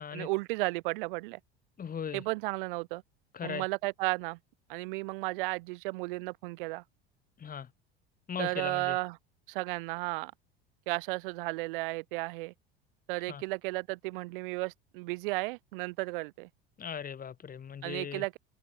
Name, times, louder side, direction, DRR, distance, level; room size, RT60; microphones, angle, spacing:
voice 1, 0.0-1.4 2.1-3.0 3.4-4.4 4.7-6.8 8.4-9.2 9.5-10.3 10.9-12.5 13.1-16.5 17.8-18.4, right 24 dB, 60° right, 2.7 m, -34 dB
voice 2, 1.8-2.2 3.3-3.6 7.4-7.7 8.3-9.0 13.3-13.4 16.8-18.2, left 7 dB, 30° left, 4.2 m, -38 dB
figure-of-eight pair, 70°, 30 cm